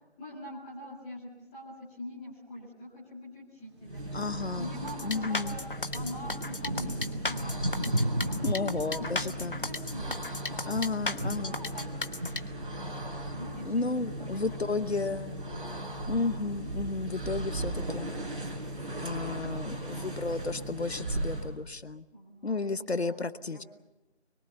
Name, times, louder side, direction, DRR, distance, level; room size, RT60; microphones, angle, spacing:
voice 1, 0.2-10.7 11.3-11.9 13.3-14.6 14.9-15.8 19.8-20.6 22.1-23.2 23.4-23.6, left 1 dB, 5° left, -9 dB, 2.1 m, -44 dB
sound 1, 3.8-21.6, right 1 dB, 50° right, 5.5 m, -37 dB
voice 2, 4.1-4.7 5.0-5.6 8.4-9.5 10.7-11.6 13.6-15.4 16.1-18.1 19.0-22.0 22.4-23.6, left 3 dB, 70° left, 14 dB, 1.0 m, -32 dB
sound 2, 4.9-12.4, left 2 dB, 55° left, 1.2 m, -35 dB
Thunder / Rain, 5.7-15.2 15.5-16.4 16.9-17.3 17.5-18.4 19.0-19.1, right 1 dB, 25° right, 1.4 m, -37 dB
24.5 x 22.5 x 6.9 m, 1.0 s
figure-of-eight pair, 170°, 33 cm